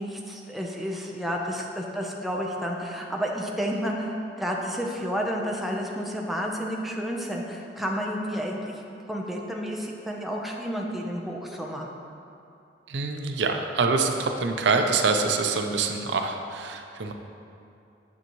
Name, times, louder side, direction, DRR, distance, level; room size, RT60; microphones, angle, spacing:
voice 1, 0.0-8.8 9.1-11.9, equal, ahead, -1 dB, 0.7 m, -31 dB
voice 2, 12.9-17.1, right 4 dB, 85° right, 5 dB, 0.6 m, -25 dB
9.6 x 7.1 x 3.1 m, 2.6 s
head